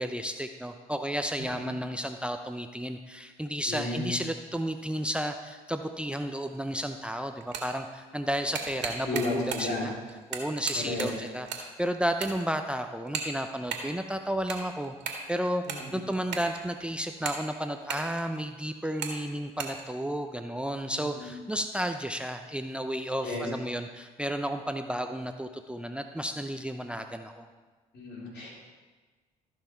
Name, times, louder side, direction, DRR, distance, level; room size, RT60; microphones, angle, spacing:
voice 1, 0.0-9.9 10.3-14.9 15.3-15.6 15.9-27.5, equal, 5° right, 7 dB, 0.7 m, -32 dB
voice 2, 1.4-1.7 3.7-4.2 9.0-9.9 10.8-11.1 15.7-16.0 20.9-21.3 23.2-23.5 27.9-28.6, left 2 dB, 65° left, -3 dB, 3.5 m, -34 dB
sound 1, 6.5-6.6 7.3-7.8 8.2-9.8 10.1-11.7 11.9-12.6 13.1-13.9 14.3-16.7 17.1-18.5 18.9-19.2 19.4-19.8, right 6 dB, 70° right, 1.9 m, -36 dB
14.5 x 5.7 x 4.6 m, 1.3 s
hypercardioid pair, 55°, 19 cm